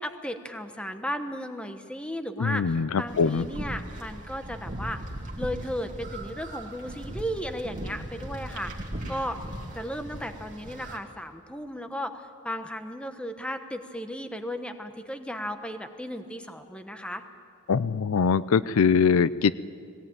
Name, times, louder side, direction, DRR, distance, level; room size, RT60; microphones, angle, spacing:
voice 1, 0.0-5.0 5.4-8.7 9.1-9.4 9.7-17.2, equal, 5° left, 7 dB, 1.1 m, -35 dB
voice 2, 2.4-3.5 17.7-19.5, left 6 dB, 85° left, 17 dB, 0.5 m, -22 dB
sound 1, 3.1-11.0, right 1 dB, 40° right, 2.3 m, -38 dB
20.0 x 17.5 x 9.0 m, 2.3 s
head